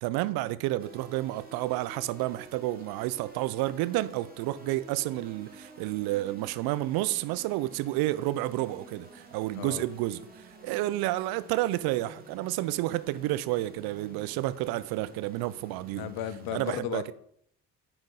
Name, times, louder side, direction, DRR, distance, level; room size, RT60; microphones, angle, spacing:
voice 1, 0.0-10.3 10.6-16.1 16.5-17.0, right 16 dB, 60° right, 0.6 m, -30 dB
sound 1, 0.8-16.6, right 2 dB, 20° right, 2.2 m, -51 dB
voice 2, 16.0-17.1, left 11 dB, 60° left, 0.8 m, -35 dB
9.1 x 5.1 x 3.7 m
figure-of-eight pair, 45°, 42 cm